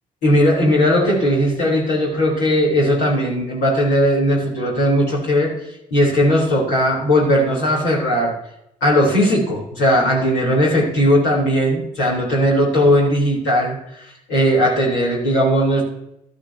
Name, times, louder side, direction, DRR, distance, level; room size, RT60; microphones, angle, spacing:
voice 1, 0.2-5.5 5.9-8.4 8.8-15.8, equal, 75° left, -4 dB, 3.6 m, -17 dB
13.5 x 13.0 x 2.8 m, 0.82 s
hypercardioid pair, 40°, 18 cm